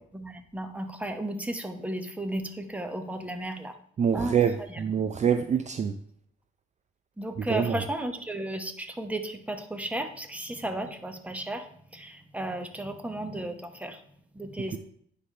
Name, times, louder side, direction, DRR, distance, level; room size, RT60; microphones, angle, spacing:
voice 1, 0.1-3.7 4.1-4.3 4.7-4.8 7.2-11.6 11.9-14.0 14.4-14.8, right 1 dB, 5° right, 6 dB, 1.0 m, -34 dB
voice 2, 4.0-5.9 7.4-7.8, right 7 dB, 35° right, 8 dB, 0.5 m, -25 dB
9.6 x 3.4 x 5.5 m, 0.63 s
cardioid pair, 90°, 20 cm